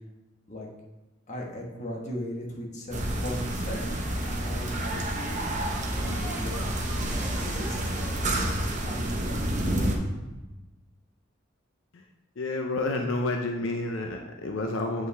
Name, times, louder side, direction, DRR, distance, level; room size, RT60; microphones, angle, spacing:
voice 1, 1.3-7.1 7.4-10.0, equal, 40° left, -2 dB, 1.3 m, -38 dB
sound 1, 2.9-10.0, right 1 dB, 40° right, 1.0 m, -29 dB
sound 2, 3.2-8.3, equal, 10° right, 0.8 m, -45 dB
voice 2, 12.4-15.1, left 2 dB, 80° left, 3 dB, 0.6 m, -29 dB
7.6 x 5.6 x 3.4 m, 1.1 s
head